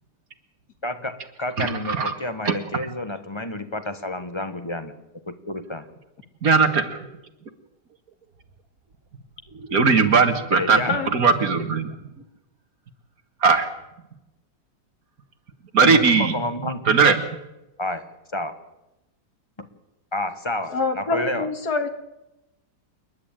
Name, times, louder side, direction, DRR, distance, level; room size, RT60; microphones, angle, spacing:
voice 1, 0.8-5.0 5.3-5.8 10.5-11.1 15.8-16.9 17.8-18.5 19.6-19.7 20.1-21.5, left 1 dB, 20° left, 9 dB, 1.3 m, -30 dB
voice 2, 1.6-2.1 2.5-2.6 6.4-7.0 9.5-11.9 13.4-13.7 15.7-16.3 16.9-17.2, right 5 dB, 60° right, 8 dB, 2.0 m, -19 dB
voice 3, 20.7-21.9, left 4 dB, 65° left, 6 dB, 2.5 m, -25 dB
28.5 x 11.0 x 9.0 m, 0.95 s
omnidirectional pair, 1.8 m